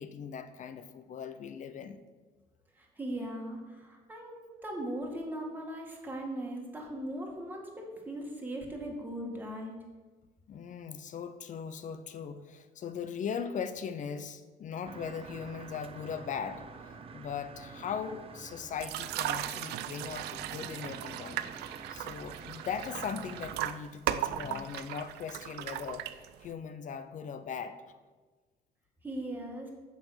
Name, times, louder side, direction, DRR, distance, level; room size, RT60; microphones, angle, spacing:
voice 1, 0.0-2.0 10.5-16.6 17.1-21.4 21.9-26.1 26.4-27.8, left 7 dB, 50° left, 11 dB, 0.7 m, -39 dB
voice 2, 2.8-9.7 29.0-29.7, right 1 dB, 10° right, -1 dB, 1.9 m, -39 dB
sound 1, 14.8-23.6, right 5 dB, 35° right, 0.7 m, -48 dB
sound 2, 18.8-26.5, right 13 dB, 80° right, 0.5 m, -37 dB
7.4 x 5.6 x 5.8 m, 1.3 s
cardioid pair, 110°, 17 cm